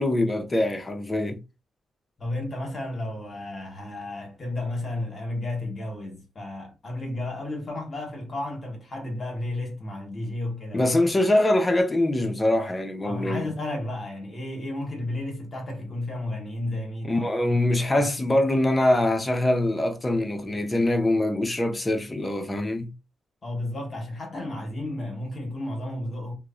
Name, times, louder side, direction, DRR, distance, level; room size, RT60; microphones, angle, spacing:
voice 1, 0.0-1.4 10.7-13.5 17.0-22.9, left 1 dB, 20° left, 0.6 m, -23 dB
voice 2, 2.2-10.9 13.0-18.1 23.4-26.3, left 1 dB, 45° left, 1.0 m, -33 dB
3.0 x 2.1 x 2.4 m
cardioid pair, 80°, 0 cm